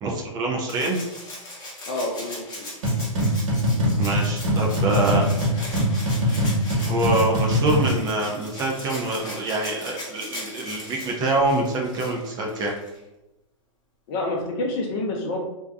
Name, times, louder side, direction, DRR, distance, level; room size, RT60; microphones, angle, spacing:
voice 1, 0.0-1.0 4.0-5.3 6.8-12.7, right 2 dB, 25° right, -1 dB, 0.5 m, -25 dB
Rattle (instrument), 0.7-13.0 14.4-14.5, left 1 dB, 25° left, 0.9 m, -39 dB
voice 2, 1.9-2.7 14.1-15.4, left 2 dB, 45° left, 1 dB, 0.6 m, -28 dB
sound 1, 2.8-7.9, equal, 65° right, 1.3 m, -22 dB
2.6 x 2.2 x 2.4 m, 0.95 s
hypercardioid pair, 115°, 17 cm